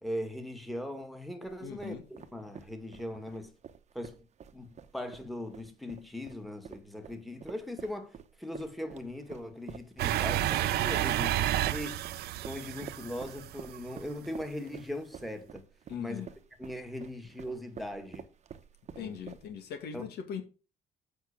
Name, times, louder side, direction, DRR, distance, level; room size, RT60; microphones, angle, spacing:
voice 1, 0.0-2.0 2.3-3.5 3.9-4.2 4.5-15.6 16.0-16.3 16.6-18.3 19.0-19.2 19.9-20.1, left 1 dB, ahead, 2.0 m, -40 dB
sound 1, 1.4-19.7, right 7 dB, 40° right, 1.1 m, -49 dB
voice 2, 1.6-2.0 15.9-16.3 19.0-20.5, left 8 dB, 70° left, 2.0 m, -40 dB
sound 2, 10.0-13.9, right 13 dB, 75° right, 0.7 m, -30 dB
8.1 x 5.7 x 7.2 m
cardioid pair, 110°, 17 cm